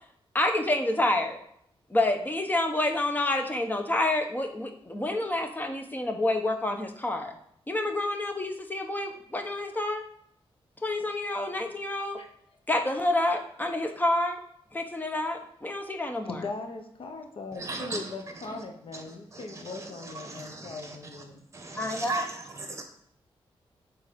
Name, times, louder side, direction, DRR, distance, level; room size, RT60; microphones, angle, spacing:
voice 1, 0.3-1.4 1.9-7.3 7.7-10.0 10.8-12.2 12.7-14.4 14.7-16.4 21.8-22.2, left 2 dB, 20° left, 5 dB, 1.0 m, -28 dB
voice 2, 16.3-21.4, left 3 dB, 65° left, 5 dB, 1.1 m, -39 dB
voice 3, 17.5-18.1 18.9-19.0 19.3-21.2 21.5-22.8, right 3 dB, 30° right, 4 dB, 1.3 m, -37 dB
6.8 x 4.0 x 5.3 m, 0.70 s
cardioid pair, 85°, 10 cm